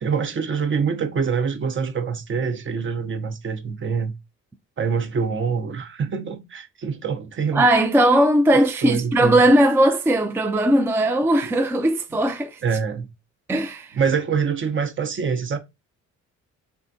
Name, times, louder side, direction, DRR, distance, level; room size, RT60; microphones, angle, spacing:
voice 1, 0.0-4.1 4.8-7.7 8.8-9.4 11.4-11.5 12.6-13.1 13.9-15.6, right 6 dB, 40° right, 0.7 m, -25 dB
voice 2, 7.5-12.6 13.5-14.0, right 1 dB, 10° right, 0.4 m, -18 dB
3.6 x 3.4 x 2.6 m
cardioid pair, 90°, 30 cm